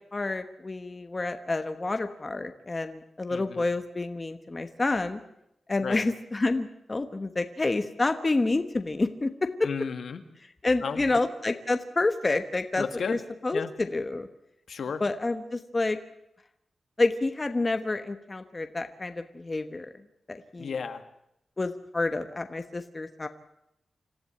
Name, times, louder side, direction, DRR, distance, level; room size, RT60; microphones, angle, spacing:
voice 1, 0.1-5.2 5.7-9.7 10.6-14.3 15.0-16.0 17.0-19.9 20.3-20.7 21.6-23.3, left 2 dB, 25° left, 8 dB, 1.2 m, -28 dB
voice 2, 3.3-3.6 5.8-6.0 9.6-10.2 10.8-11.0 12.8-13.2 13.5-13.7 14.7-15.0 20.6-21.0, left 6 dB, 70° left, 8 dB, 1.9 m, -33 dB
26.0 x 15.0 x 8.7 m, 0.82 s
wide cardioid pair, 150°, 0 cm